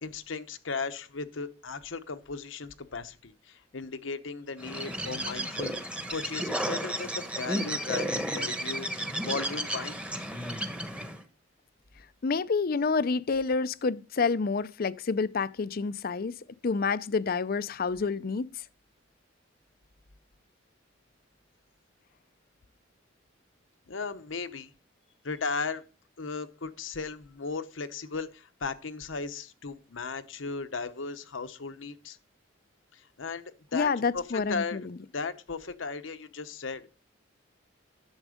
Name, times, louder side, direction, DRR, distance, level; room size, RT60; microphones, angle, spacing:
voice 1, 0.0-10.0 23.9-24.7 25.2-25.8 26.2-32.2 32.9-34.8 35.1-36.9, left 4 dB, 85° left, 1.0 m, -36 dB
Bird, 4.6-11.2, right 1 dB, 5° right, 1.1 m, -33 dB
voice 2, 12.2-16.3 16.6-18.5 33.7-34.8, left 4 dB, 50° left, 0.5 m, -28 dB
11.0 x 7.2 x 5.0 m
head